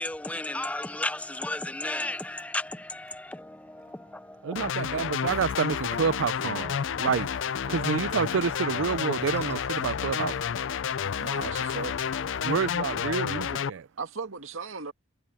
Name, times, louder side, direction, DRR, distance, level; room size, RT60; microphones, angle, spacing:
voice 1, 0.0-4.7 5.0-5.4 6.6-7.1, left 2 dB, 5° left, 0.5 m, -35 dB
voice 2, 4.4-7.3 7.7-10.4 11.2-11.3 12.4-13.9, right 6 dB, 65° right, 0.4 m, -28 dB
sound 1, 4.6-13.7, left 7 dB, 65° left, 0.4 m, -30 dB
sound 2, 6.1-6.4 7.2-7.3 8.4-8.5 9.3-9.7, right 3 dB, 30° right, 1.6 m, -56 dB
voice 3, 11.2-12.1 14.0-14.9, right 4 dB, 85° right, 2.1 m, -37 dB
head